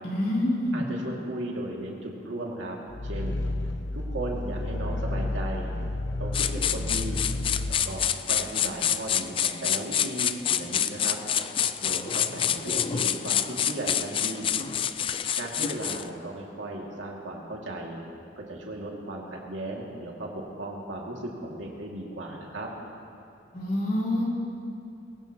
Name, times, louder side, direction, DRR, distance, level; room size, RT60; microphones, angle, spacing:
voice 1, 0.0-0.8 23.5-24.3, left 1 dB, 50° left, -5 dB, 3.7 m, -26 dB
voice 2, 0.7-2.8 3.0-3.4 3.9-5.7 6.2-7.2 7.7-11.2 11.8-14.5 15.4-18.0 18.4-22.7, right 1 dB, 85° right, -2 dB, 2.4 m, -36 dB
Growling, 2.9-7.8, left 2 dB, 70° left, 1.0 m, -31 dB
sound 1, 6.3-16.1, left 9 dB, 30° left, 0.3 m, -27 dB
21.5 x 16.5 x 3.0 m, 2.5 s
head